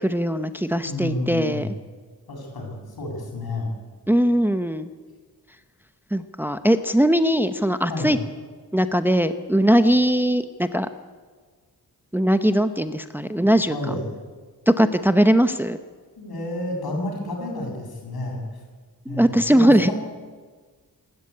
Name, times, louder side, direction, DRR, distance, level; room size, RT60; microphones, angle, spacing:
voice 1, 0.0-1.7 4.1-4.9 6.1-8.2 8.7-10.9 12.1-14.0 14.7-15.8 19.1-19.9, equal, 5° right, 10 dB, 0.8 m, -20 dB
voice 2, 0.8-1.7 2.3-3.7 7.9-8.1 13.7-14.0 16.2-18.4 19.1-19.9, left 2 dB, 80° left, 1 dB, 7.7 m, -30 dB
28.0 x 13.5 x 9.8 m, 1.5 s
wide cardioid pair, 140°, 37 cm